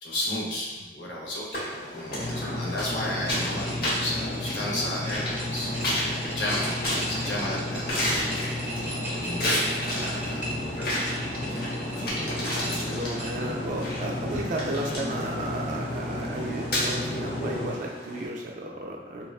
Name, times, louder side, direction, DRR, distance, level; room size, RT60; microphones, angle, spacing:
voice 1, 0.0-5.7 6.2-10.9 11.3-11.7 12.5-13.0, left 1 dB, 85° left, -4 dB, 0.8 m, -34 dB
sound 1, 1.5-18.3, left 1 dB, 60° left, 0.9 m, -33 dB
sound 2, 2.1-17.7, left 1 dB, 30° left, 0.5 m, -33 dB
sound 3, 3.1-12.2 12.6-13.6, right 1 dB, 10° right, 0.7 m, -39 dB
voice 2, 8.7-9.3 9.8-10.2 10.7-10.8 12.6-19.3, right 1 dB, 45° right, -1 dB, 0.3 m, -34 dB
3.5 x 2.2 x 2.3 m, 1.1 s
head